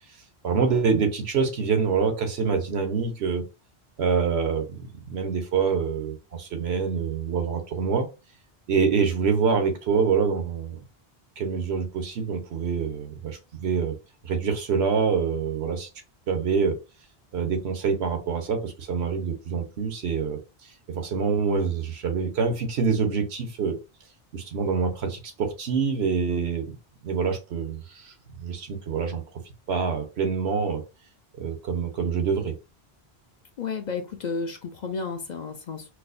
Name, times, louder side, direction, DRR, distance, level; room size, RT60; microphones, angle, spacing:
voice 1, 0.4-3.4 4.0-8.1 8.7-10.8 11.4-13.9 14.2-15.9 16.3-16.8 17.3-20.4 20.9-23.8 24.3-26.8 27.0-29.2 29.7-30.8 31.4-32.6, right 5 dB, 90° right, 1.1 m, -26 dB
voice 2, 33.6-35.9, left 5 dB, 55° left, 0.6 m, -32 dB
4.7 x 2.0 x 2.5 m
omnidirectional pair, 1.0 m